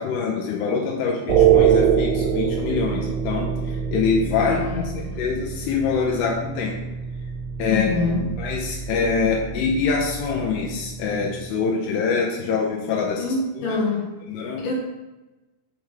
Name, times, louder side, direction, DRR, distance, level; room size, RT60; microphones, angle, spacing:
voice 1, 0.0-3.5 3.9-6.8 7.6-8.1 8.4-13.2 13.6-13.8 14.3-14.6, left 5 dB, 90° left, -2 dB, 2.3 m, -24 dB
sound 1, 1.3-11.5, right 8 dB, 90° right, 3.3 m, -24 dB
voice 2, 4.4-5.2 7.7-8.5 13.2-14.2 14.6-14.7, left 3 dB, 60° left, -3 dB, 2.4 m, -26 dB
6.8 x 4.8 x 3.3 m, 1.1 s
omnidirectional pair, 5.7 m